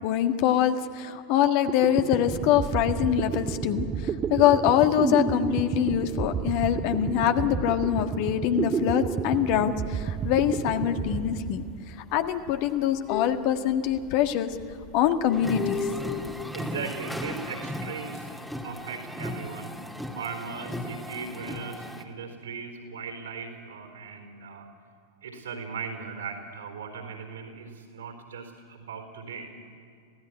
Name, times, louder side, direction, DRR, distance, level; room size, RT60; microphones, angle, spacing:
voice 1, 0.0-14.5 14.9-15.9, left 10 dB, 45° left, 7 dB, 1.6 m, -24 dB
sound 1, 1.4-1.5 1.7-12.1, right 7 dB, 25° right, 0.9 m, -31 dB
sound 2, 9.3-16.5, left 7 dB, 30° left, 2.8 m, -37 dB
sound 3, 15.3-22.0, equal, ahead, 1.9 m, -36 dB
voice 2, 16.5-18.3 18.6-19.7 20.1-24.7 25.2-29.5, right 5 dB, 65° right, 5 dB, 4.1 m, -38 dB
25.0 x 17.0 x 9.8 m, 2.3 s
figure-of-eight pair, 90°, 0 cm